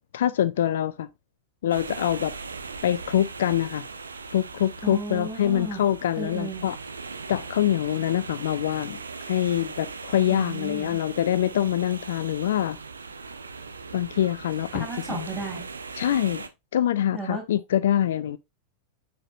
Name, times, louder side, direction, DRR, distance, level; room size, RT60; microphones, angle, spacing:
voice 1, 0.1-1.1 1.6-2.3 2.8-3.8 4.3-6.8 7.3-12.8 13.9-14.9 16.0-16.4 16.7-18.4, left 11 dB, 60° left, 0.4 m, -25 dB
sound 1, 1.7-16.5, right 4 dB, 75° right, 0.8 m, -39 dB
voice 2, 4.8-5.8 6.2-6.6 10.3-11.0 14.7-15.7 17.1-17.4, right 2 dB, 5° right, 3.8 m, -34 dB
8.8 x 4.5 x 2.5 m
figure-of-eight pair, 90°, 0 cm